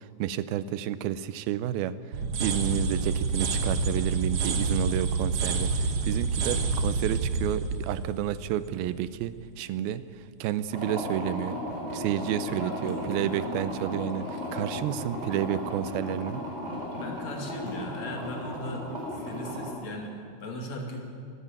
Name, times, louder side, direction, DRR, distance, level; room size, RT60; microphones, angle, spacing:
voice 1, 0.0-11.6 11.9-16.4, right 11 dB, 85° right, 14 dB, 2.6 m, -31 dB
sound 1, 2.1-9.0, right 4 dB, 55° right, 1.8 m, -28 dB
sound 2, 10.7-19.7, equal, 20° right, 5.5 m, -35 dB
voice 2, 12.5-13.5 16.9-18.9 19.1-21.1, left 1 dB, 50° left, 1 dB, 3.5 m, -38 dB
25.5 x 12.5 x 9.1 m, 2.3 s
omnidirectional pair, 4.2 m